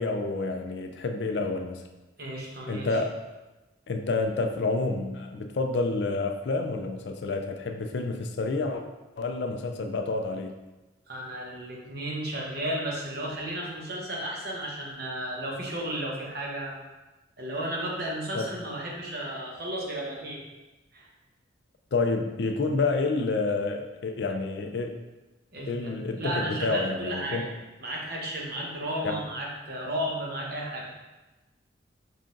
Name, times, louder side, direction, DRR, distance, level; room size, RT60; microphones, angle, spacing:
voice 1, 0.0-1.8 2.7-3.2 3.9-8.8 9.2-10.5 18.3-18.6 21.9-25.0 25.6-27.5 29.0-29.2, left 3 dB, 60° left, 5 dB, 0.4 m, -29 dB
voice 2, 2.2-3.0 11.1-16.8 17.4-20.4 20.9-21.1 25.5-27.5 27.8-30.9, right 1 dB, 50° right, -2 dB, 0.9 m, -33 dB
5.6 x 3.7 x 2.5 m, 1.1 s
head